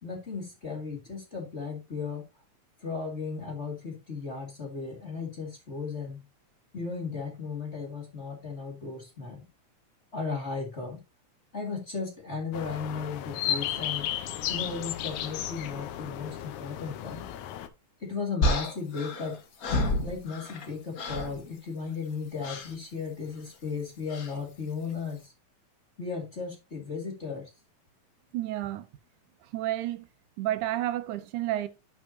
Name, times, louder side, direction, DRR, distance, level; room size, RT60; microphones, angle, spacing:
voice 1, 0.0-2.2 2.8-6.2 6.7-9.4 10.1-11.0 11.5-14.1 14.5-17.2 18.0-19.4 20.0-25.3 26.0-27.5, left 5 dB, 25° left, 1.9 m, -35 dB
sound 1, 12.5-17.7, left 11 dB, 85° left, 2.2 m, -34 dB
sound 2, 18.4-20.7 21.0-21.4 22.4-22.7 24.1-24.4, left 1 dB, 65° left, 0.8 m, -30 dB
voice 2, 28.3-28.9 29.5-30.1 30.4-31.7, right 14 dB, 90° right, 2.2 m, -30 dB
10.0 x 6.1 x 2.7 m
omnidirectional pair, 3.4 m